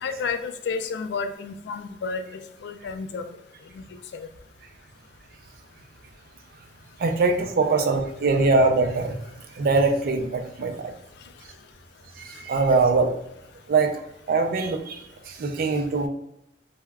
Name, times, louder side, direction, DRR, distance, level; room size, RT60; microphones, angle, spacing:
voice 1, 0.0-2.2 2.6-3.2 3.7-3.8 4.1-4.3, left 5 dB, 65° left, 8 dB, 0.3 m, -31 dB
voice 2, 7.0-9.2 9.6-10.9 12.2-13.1 13.7-14.0 14.3-16.1, right 3 dB, 55° right, 5 dB, 0.4 m, -22 dB
2.2 x 2.1 x 3.3 m, 0.81 s
head